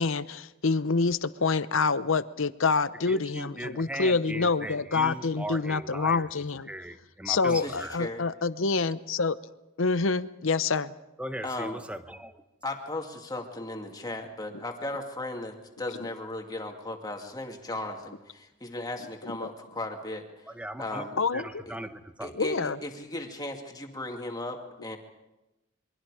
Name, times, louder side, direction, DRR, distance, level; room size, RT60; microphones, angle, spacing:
voice 1, 0.0-6.7 7.3-9.4 9.8-10.9 19.2-19.5 21.2-21.6 22.3-22.8, left 4 dB, 65° left, 14 dB, 0.8 m, -27 dB
voice 2, 3.1-6.3 6.7-8.0 11.2-12.3 20.5-21.0 21.3-22.3, right 1 dB, 5° right, 9 dB, 1.1 m, -38 dB
voice 3, 7.5-8.3 11.4-11.8 12.6-20.5 20.8-21.2 21.7-21.8 22.2-25.0, left 2 dB, 20° left, 3 dB, 2.3 m, -36 dB
28.0 x 23.5 x 5.0 m, 0.97 s
head